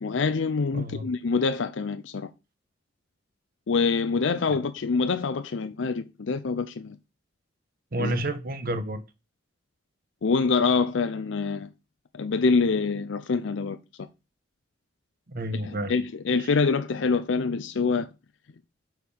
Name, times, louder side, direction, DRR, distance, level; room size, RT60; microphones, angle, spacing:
voice 1, 0.0-2.3 3.7-7.0 8.0-8.1 10.2-11.7 12.2-13.8 15.6-18.1, left 4 dB, 75° left, 0.5 m, -25 dB
voice 2, 0.7-1.1 7.9-9.0 15.3-16.0 16.3-16.5, right 1 dB, 50° right, 1.0 m, -30 dB
6.7 x 4.7 x 5.4 m
head